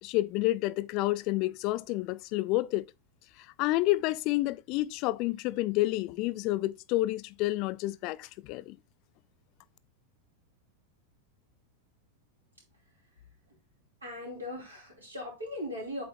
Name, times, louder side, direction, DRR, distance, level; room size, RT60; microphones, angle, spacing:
voice 1, 0.0-2.9 3.6-8.8, left 18 dB, 40° left, 0.3 m, -29 dB
voice 2, 14.0-16.0, left 1 dB, 80° right, 2.8 m, -39 dB
8.0 x 3.8 x 3.4 m
figure-of-eight pair, 90°, 0 cm